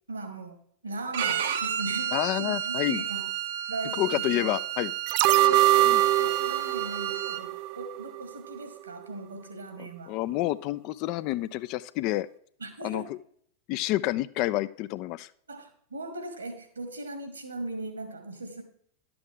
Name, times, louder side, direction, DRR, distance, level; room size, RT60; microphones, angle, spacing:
voice 1, 0.1-0.6 0.8-3.3 3.7-4.5 5.3-10.2 12.6-13.1 15.5-18.6, right 2 dB, 75° right, 8 dB, 1.8 m, -38 dB
Bowed string instrument, 1.1-7.4, right 10 dB, 60° right, 0.8 m, -32 dB
voice 2, 2.1-3.0 4.0-4.9 5.8-6.0 9.8-12.3 12.8-13.2 13.7-15.3, left 16 dB, 40° left, 16 dB, 0.4 m, -29 dB
Effect FX Cyber, 5.1-8.2 8.5-8.6, right 15 dB, 45° right, 0.3 m, -23 dB
11.5 x 7.7 x 3.7 m, 0.63 s
figure-of-eight pair, 90°, 0 cm